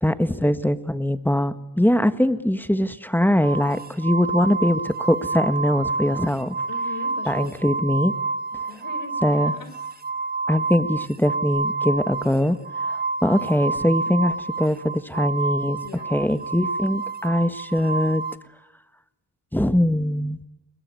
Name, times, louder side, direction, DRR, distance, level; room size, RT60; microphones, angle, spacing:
voice 1, 0.0-6.6 7.3-8.1 9.2-9.5 10.5-12.6 12.9-15.8 16.1-18.2 19.5-20.4, left 1 dB, 5° left, 11 dB, 1.5 m, -22 dB
sound 1, 3.4-18.4, right 3 dB, 25° right, 1.7 m, -29 dB
voice 2, 6.7-7.6 8.7-9.7 15.8-16.1 16.4-16.5, left 4 dB, 55° left, 7 dB, 4.4 m, -39 dB
22.5 x 21.5 x 9.5 m, 0.94 s
cardioid pair, 70°, 39 cm